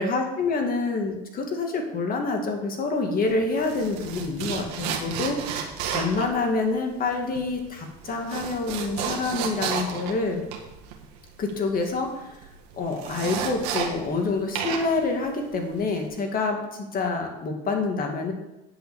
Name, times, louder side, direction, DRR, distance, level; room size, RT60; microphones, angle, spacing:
voice 1, 0.0-5.4 5.9-10.4 11.4-12.4 12.7-18.3, left 3 dB, 45° left, 3 dB, 2.2 m, -27 dB
sound 1, 3.2-14.3 14.5-16.1, right 7 dB, 80° right, 1.8 m, -32 dB
9.9 x 5.6 x 7.2 m, 0.97 s
supercardioid pair, 85°, 21 cm